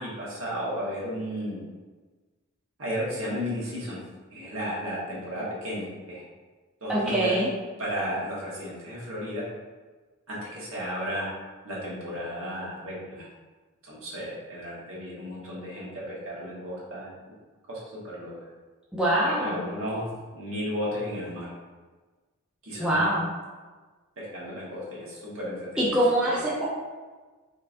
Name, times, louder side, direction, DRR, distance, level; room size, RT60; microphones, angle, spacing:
voice 1, 0.0-1.6 2.8-4.0 4.3-6.2 6.8-7.4 7.8-9.4 10.3-11.3 11.6-13.3 13.8-17.3 17.7-18.3 19.2-21.5 22.6-23.1 24.2-26.0 26.3-26.4, equal, 65° right, -6 dB, 1.4 m, -34 dB
voice 2, 6.9-7.5 18.9-19.6 22.7-23.2 25.8-26.7, right 1 dB, 5° right, -8 dB, 0.6 m, -24 dB
4.3 x 3.8 x 2.6 m, 1.3 s
head